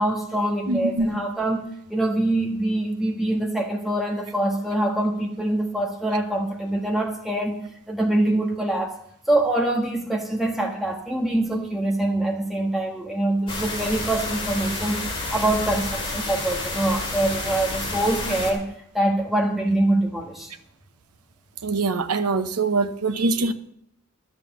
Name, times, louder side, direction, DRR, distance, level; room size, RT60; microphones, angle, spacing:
voice 1, 0.0-7.5 7.9-9.0 9.3-15.0 15.3-18.7 18.9-20.5, right 1 dB, ahead, 1.4 m, -24 dB
voice 2, 0.7-1.1 21.6-23.5, right 3 dB, 90° right, 0.9 m, -23 dB
sound 1, 13.5-18.5, left 2 dB, 25° left, 2.4 m, -30 dB
11.5 x 7.4 x 7.3 m
head